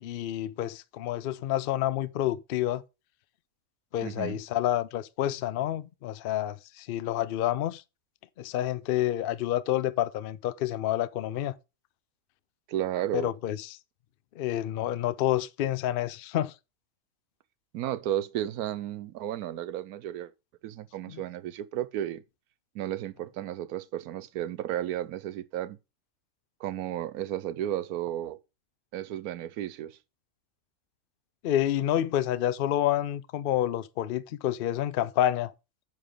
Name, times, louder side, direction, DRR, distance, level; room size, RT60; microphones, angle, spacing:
voice 1, 0.0-2.8 3.9-7.8 8.4-11.5 13.1-13.8 14.4-16.5 21.1-21.2 31.4-35.5, left 12 dB, 85° left, 0.4 m, -28 dB
voice 2, 4.0-4.4 12.7-13.3 17.7-20.3 20.6-22.2 22.7-25.8 26.6-28.4 28.9-30.0, right 12 dB, 90° right, 1.1 m, -33 dB
8.9 x 3.6 x 6.7 m
omnidirectional pair, 1.5 m